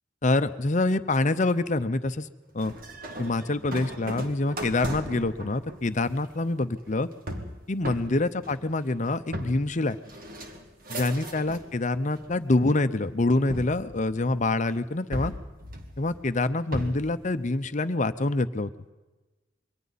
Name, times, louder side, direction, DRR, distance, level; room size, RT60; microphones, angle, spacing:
voice 1, 0.2-2.3 2.5-2.7 3.2-7.1 7.7-10.0 10.9-15.3 16.0-18.7, left 2 dB, 40° left, 11 dB, 0.7 m, -26 dB
sound 1, 2.6-11.7 12.1-12.8 13.5-14.6 15.1-17.2, equal, 50° right, 2.1 m, -38 dB
27.5 x 23.0 x 4.1 m, 1.2 s
head